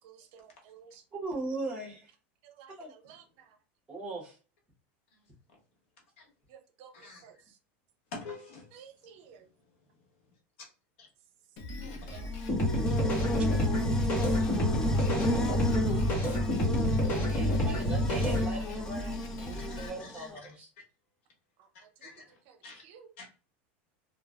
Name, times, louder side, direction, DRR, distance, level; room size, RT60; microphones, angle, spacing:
voice 1, 0.0-1.0 2.4-3.6 6.5-7.6 8.7-9.5 11.8-12.3 13.9-14.1 14.8-15.0 15.9-16.1 16.3-17.0 18.5-18.6 21.6-22.1 22.5-23.1, right 8 dB, 60° right, 0.6 m, -55 dB
voice 2, 1.1-2.1 2.8-2.9 3.9-4.4 17.3-20.7, right 2 dB, 15° right, 1.3 m, -39 dB
voice 3, 6.9-7.3 8.1-8.7 11.0-11.1 12.0-12.3 14.3-14.5 15.0-15.2 16.6-17.0 18.2-18.3 19.6-20.6 21.7-22.8 23.2-23.3, left 3 dB, 80° left, 1.2 m, -48 dB
Drum kit, 11.6-19.9, left 2 dB, 50° left, 0.7 m, -41 dB
Buzz, 12.2-20.3, left 1 dB, 10° left, 0.3 m, -34 dB
sound 1, 12.5-18.5, left 1 dB, 30° left, 1.2 m, -28 dB
3.1 x 2.2 x 2.4 m
supercardioid pair, 135°, 6 cm